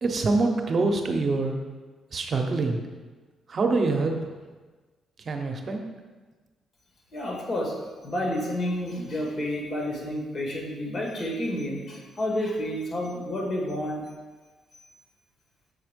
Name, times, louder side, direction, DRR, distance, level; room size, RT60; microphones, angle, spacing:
voice 1, 0.0-1.6 2.1-2.8 3.5-4.2 5.2-5.9, right 3 dB, 45° right, 4 dB, 0.9 m, -25 dB
voice 2, 7.1-7.7 8.0-14.0, left 1 dB, 50° left, -2 dB, 2.1 m, -30 dB
6.5 x 4.2 x 5.2 m, 1.3 s
cardioid pair, 90°, 0 cm